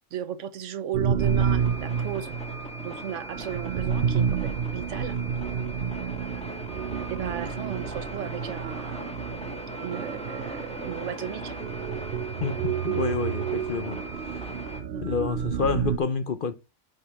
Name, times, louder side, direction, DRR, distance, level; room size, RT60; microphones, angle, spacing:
voice 1, 0.1-2.3 2.8-5.2 7.1-9.2 9.8-11.6 14.9-15.1, right 9 dB, 80° right, 1.2 m, -35 dB
sound 1, 0.9-16.0, right 7 dB, 55° right, 0.8 m, -30 dB
sound 2, 1.2-14.8, equal, 5° left, 1.5 m, -39 dB
voice 2, 12.4-14.0 14.2-14.5 15.0-16.5, left 5 dB, 50° left, 0.8 m, -29 dB
7.8 x 5.3 x 4.2 m
omnidirectional pair, 1.2 m